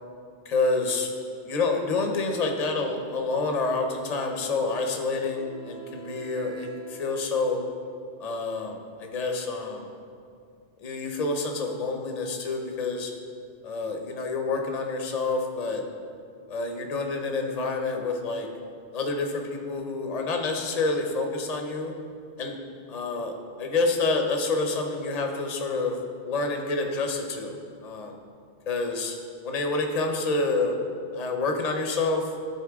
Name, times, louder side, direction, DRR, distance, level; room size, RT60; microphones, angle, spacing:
voice 1, 0.5-1.1 1.4-7.6 8.2-9.9 10.8-13.1 13.6-15.8 16.5-18.5 18.9-21.9 22.4-22.6 22.9-26.0 26.2-27.6 27.8-28.1 28.7-29.2 29.4-30.8 31.1-32.3, left 3 dB, 40° left, 3 dB, 0.8 m, -28 dB
Wind instrument woodwind instrument, 4.4-8.0, right 6 dB, 65° right, 1.4 m, -48 dB
13.0 x 4.4 x 3.5 m, 2.4 s
omnidirectional pair, 1.1 m